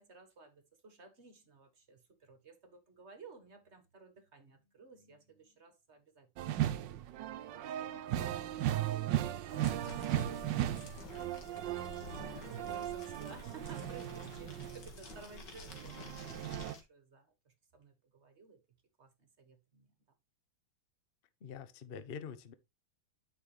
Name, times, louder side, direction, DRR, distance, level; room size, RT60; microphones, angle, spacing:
voice 1, 0.0-18.6 19.0-19.9, right 4 dB, 40° right, 1.5 m, -57 dB
sound 1, 6.4-15.1 15.5-16.8, right 12 dB, 75° right, 1.4 m, -37 dB
sound 2, 9.5-16.8, left 2 dB, 65° left, 2.4 m, -50 dB
voice 2, 21.4-22.5, left 6 dB, 45° left, 0.8 m, -45 dB
9.6 x 6.1 x 3.2 m
omnidirectional pair, 2.0 m